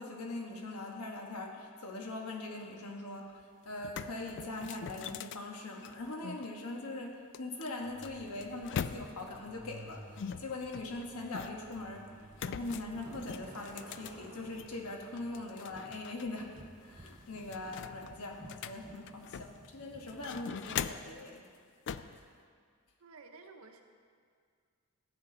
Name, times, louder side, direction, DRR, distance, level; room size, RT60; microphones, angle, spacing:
voice 1, 0.0-21.4, left 2 dB, 85° left, 1 dB, 1.2 m, -42 dB
sound 1, 3.3-3.4 3.7-6.5 7.3-9.4 10.2-11.8 12.3-14.8 15.2-16.3 16.6-16.7 17.1-19.7 20.1-21.2 21.9-22.2, left 7 dB, 55° left, 0.3 m, -42 dB
Truck, 7.8-16.5, right 1 dB, 40° right, 1.2 m, -55 dB
sound 2, 13.0-20.8, right 2 dB, 20° right, 0.4 m, -56 dB
voice 2, 23.0-23.8, right 4 dB, 65° right, 5 dB, 0.7 m, -53 dB
13.5 x 8.1 x 3.9 m, 2.1 s
head